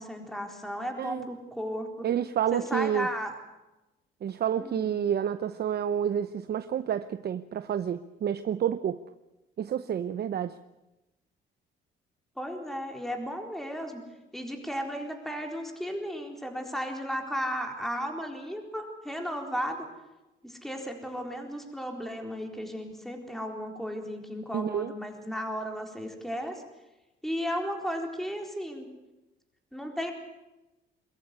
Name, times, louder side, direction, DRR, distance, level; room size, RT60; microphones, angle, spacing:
voice 1, 0.0-2.1 2.5-3.3 4.6-4.9 12.4-14.0 14.3-19.8 20.4-26.6 27.2-28.9 29.7-30.1, equal, ahead, 3 dB, 4.1 m, -34 dB
voice 2, 2.0-3.1 4.2-9.0 9.6-10.5 24.5-24.9, right 9 dB, 55° right, 12 dB, 0.7 m, -29 dB
22.5 x 14.0 x 9.6 m, 1.0 s
cardioid pair, 90°, 20 cm